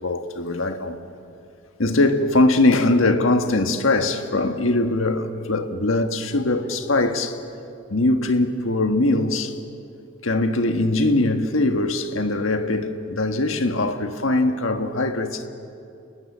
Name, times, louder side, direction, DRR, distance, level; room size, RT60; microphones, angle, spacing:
voice 1, 0.0-1.0 1.8-7.4 7.9-9.6 10.2-15.5, left 2 dB, 80° left, 1.5 m, -21 dB
27.5 x 20.5 x 7.4 m
head